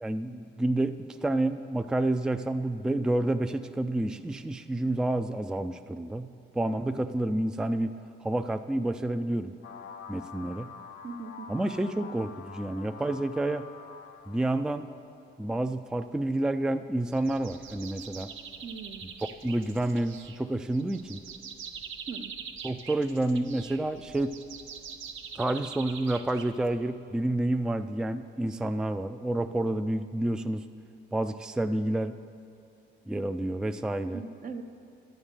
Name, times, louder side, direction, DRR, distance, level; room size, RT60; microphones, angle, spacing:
voice 1, 0.0-7.9 8.2-9.5 10.1-10.7 11.5-13.7 14.3-14.9 15.4-18.3 19.0-21.2 22.6-24.4 25.4-30.7 31.1-32.2 33.1-34.2, right 1 dB, 5° right, 9 dB, 0.3 m, -29 dB
sound 1, 9.6-14.7, left 6 dB, 65° left, 0.5 m, -46 dB
voice 2, 11.0-11.5 18.6-19.1 22.1-22.3 34.1-34.6, right 5 dB, 45° right, 7 dB, 0.7 m, -40 dB
sound 2, 17.1-26.9, right 6 dB, 80° right, 0.8 m, -44 dB
11.0 x 6.6 x 7.3 m, 2.5 s
cardioid pair, 90°, 20 cm